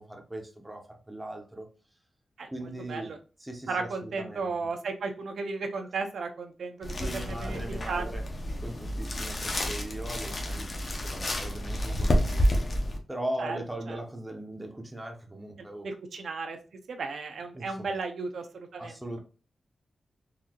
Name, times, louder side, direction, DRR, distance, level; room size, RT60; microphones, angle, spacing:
voice 1, 0.0-1.7 2.5-3.1 3.4-4.5 7.0-8.3 8.6-12.6 13.1-15.9 17.5-18.0 18.8-19.2, right 1 dB, 5° right, 0.6 m, -39 dB
voice 2, 3.7-7.6 7.9-8.0 13.4-13.6 13.9-14.0 15.6-16.6 16.9-19.2, right 4 dB, 85° right, 0.6 m, -34 dB
sound 1, 6.8-13.0, equal, 35° left, 0.7 m, -29 dB
4.0 x 2.7 x 2.8 m
wide cardioid pair, 175°, 0 cm